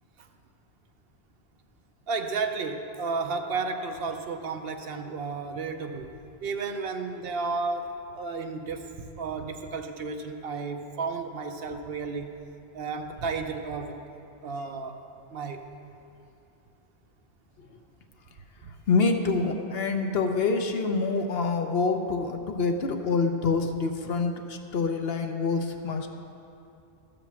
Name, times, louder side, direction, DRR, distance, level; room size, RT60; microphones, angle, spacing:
voice 1, 2.1-6.1 6.4-12.3 12.7-14.0 14.4-15.0 15.3-15.6 18.6-18.7, right 4 dB, 65° right, 6 dB, 0.9 m, -32 dB
voice 2, 18.9-26.1, left 4 dB, 65° left, 5 dB, 1.0 m, -26 dB
13.5 x 5.1 x 7.1 m, 2.6 s
omnidirectional pair, 1.1 m